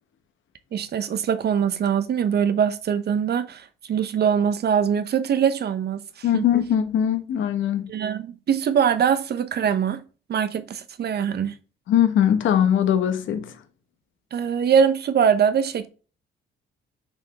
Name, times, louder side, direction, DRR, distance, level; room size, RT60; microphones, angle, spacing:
voice 1, 0.7-6.0 6.3-6.4 7.9-10.0 10.3-11.5 14.3-15.9, right 7 dB, 55° right, 0.8 m, -22 dB
voice 2, 6.2-8.0 11.9-13.6, left 9 dB, 75° left, 1.3 m, -21 dB
6.9 x 3.5 x 5.8 m
cardioid pair, 90°, 20 cm